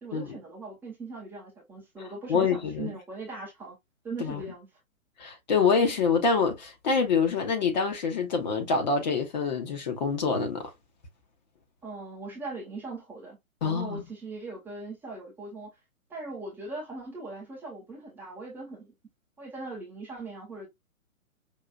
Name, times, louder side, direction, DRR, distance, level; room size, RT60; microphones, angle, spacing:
voice 1, 0.0-3.8 4.0-4.7 11.8-13.4 13.6-15.7 16.1-18.9 19.4-20.7, right 3 dB, 5° right, 0.7 m, -40 dB
voice 2, 2.3-2.9 4.2-4.4 5.2-10.7 13.6-14.0, left 5 dB, 35° left, 0.9 m, -26 dB
5.5 x 2.4 x 2.2 m
figure-of-eight pair, 130°, 41 cm